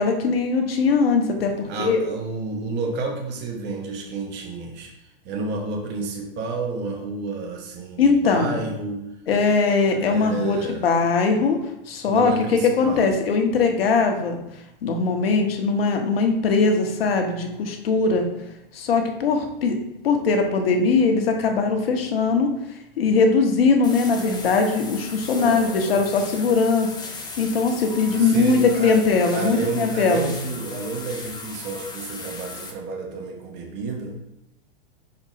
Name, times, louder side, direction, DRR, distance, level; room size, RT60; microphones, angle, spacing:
voice 1, 0.0-2.0 8.0-8.6 9.3-11.6 11.9-14.4 14.8-18.3 18.7-19.8 20.0-22.5 23.0-26.9 27.4-30.3, left 4 dB, 80° left, 3 dB, 1.2 m, -20 dB
voice 2, 1.7-9.0 9.9-10.9 12.1-13.1 25.3-26.0 26.4-26.5 28.1-28.9 29.3-34.2, right 3 dB, 35° right, 1 dB, 1.4 m, -31 dB
sound 1, 23.8-32.7, left 3 dB, 15° left, 1.0 m, -37 dB
5.3 x 4.3 x 4.2 m, 0.88 s
hypercardioid pair, 120°, 29 cm